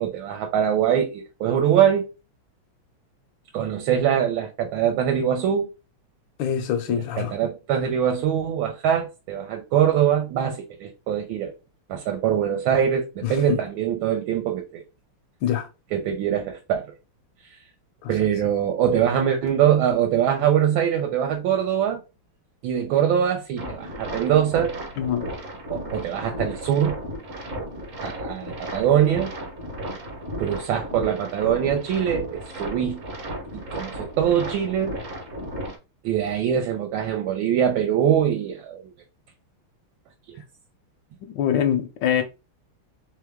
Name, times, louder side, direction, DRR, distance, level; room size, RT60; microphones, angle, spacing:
voice 1, 0.0-2.1 3.5-5.7 7.2-11.5 11.9-14.8 15.9-16.9 17.4-17.6 18.1-22.0 22.6-24.8 25.7-27.0 28.0-29.3 30.4-33.0 33.5-34.9 36.0-38.9 40.3-40.4, right 9 dB, 75° right, 1.4 m, -23 dB
voice 2, 6.4-7.3 13.2-13.6 15.4-15.7 18.0-18.1 25.0-25.3 41.2-42.2, left 9 dB, 75° left, 1.2 m, -24 dB
sound 1, 23.6-35.8, equal, 45° right, 1.2 m, -34 dB
3.5 x 3.4 x 3.5 m
omnidirectional pair, 2.4 m